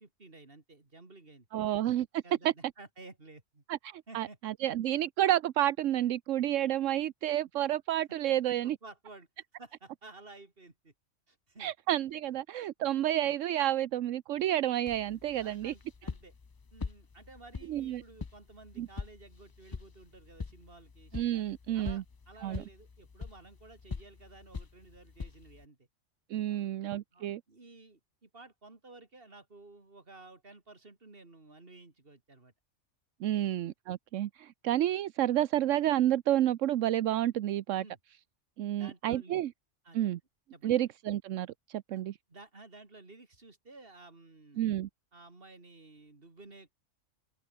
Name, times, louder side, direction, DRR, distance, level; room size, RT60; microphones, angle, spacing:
voice 1, 0.0-1.7 2.2-3.6 4.1-4.4 8.6-9.3 9.6-10.9 11.3-11.7 12.8-12.9 15.1-16.3 16.7-21.5 21.7-25.9 26.4-26.8 27.1-32.5 33.2-33.5 37.8-38.0 38.7-39.4 39.8-40.1 40.5-40.7 41.9-42.0 42.3-44.6 45.1-46.7, right 3 dB, 50° right, 3.3 m, -54 dB
voice 2, 1.5-2.2 3.7-8.8 11.6-15.7 17.7-18.0 18.8-18.9 21.1-22.0 22.4-22.6 26.3-27.4 33.2-37.8 38.6-39.5 39.9-40.2 40.6-42.2 44.6-44.9, right 12 dB, 80° right, 1.0 m, -30 dB
sound 1, 14.9-25.6, left 4 dB, 35° left, 0.3 m, -44 dB
omnidirectional pair, 1.3 m